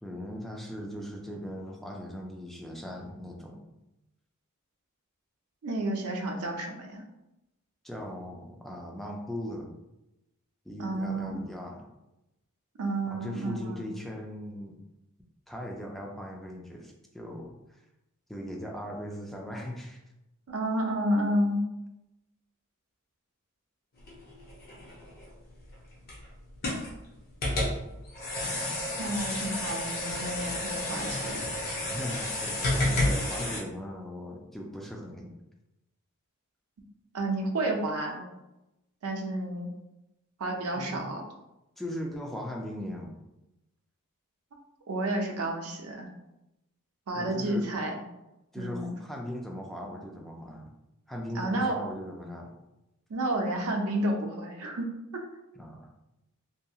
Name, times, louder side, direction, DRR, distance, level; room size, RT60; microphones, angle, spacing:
voice 1, 0.0-3.6 7.8-9.7 10.7-11.9 13.1-14.8 15.5-17.5 18.3-20.0 31.9-35.3 40.7-41.1 41.8-43.1 47.1-47.7 48.5-50.7 51.1-52.5 55.6-55.9, equal, ahead, 0 dB, 0.3 m, -39 dB
voice 2, 5.6-7.0 10.8-11.4 12.8-13.9 20.5-21.7 29.0-31.4 37.1-38.3 39.0-39.7 40.4-41.2 44.9-46.1 47.1-48.0 48.6-48.9 51.3-51.8 53.1-54.9 55.1-55.3, right 1 dB, 70° right, 2 dB, 0.5 m, -30 dB
sound 1, 24.0-33.6, left 1 dB, 45° left, 0.6 m, -31 dB
2.7 x 2.7 x 2.3 m, 0.93 s
head